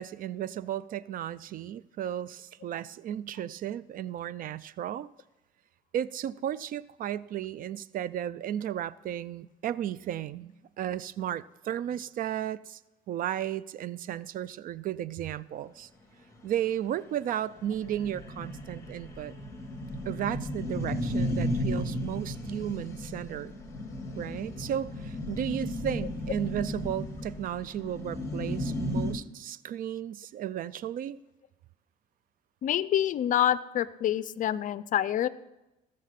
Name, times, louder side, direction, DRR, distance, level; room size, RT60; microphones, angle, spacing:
voice 1, 0.0-5.1 5.9-12.8 13.1-15.9 16.4-19.3 20.1-23.5 24.2-31.2, right 11 dB, 55° right, 19 dB, 0.4 m, -34 dB
sound 1, 16.4-16.5 16.9-17.0 17.2-17.3 17.6-29.1, left 1 dB, 15° left, 2.2 m, -34 dB
voice 2, 32.6-35.3, left 11 dB, 50° left, 17 dB, 0.5 m, -27 dB
17.0 x 6.6 x 5.8 m, 0.97 s
cardioid pair, 110°, 17 cm